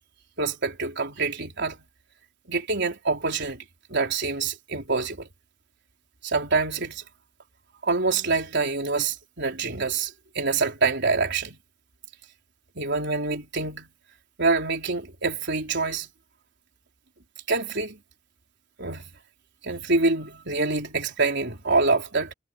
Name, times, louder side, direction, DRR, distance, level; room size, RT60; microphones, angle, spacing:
voice 1, 0.4-1.8 2.5-3.6 3.9-5.3 6.2-7.0 7.8-11.6 12.8-13.9 14.4-16.1 17.5-18.0 18.8-19.2 19.6-22.3, right 3 dB, 60° right, 4.2 m, -26 dB
head